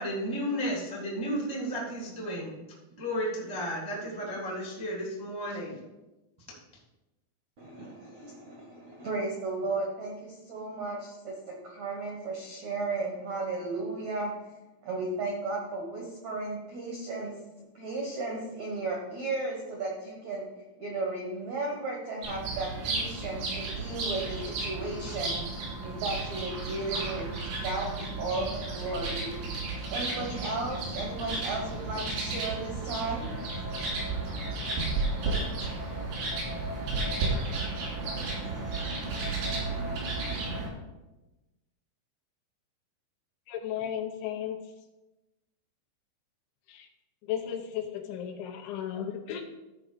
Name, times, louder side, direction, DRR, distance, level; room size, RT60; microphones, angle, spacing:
voice 1, 0.0-2.5 3.0-5.8, equal, 30° right, -4 dB, 0.4 m, -33 dB
voice 2, 7.6-14.3 14.8-17.3 17.7-20.5 20.8-25.4 25.8-29.3 29.9-33.3, right 3 dB, 70° right, -2 dB, 1.7 m, -35 dB
Birds in a park, 22.2-40.7, right 3 dB, 90° right, 5.5 m, -33 dB
voice 3, 43.5-44.6 46.7-46.9 47.2-49.4, left 9 dB, 80° left, 4 dB, 3.0 m, -34 dB
13.5 x 4.9 x 5.0 m, 1.0 s
omnidirectional pair, 5.4 m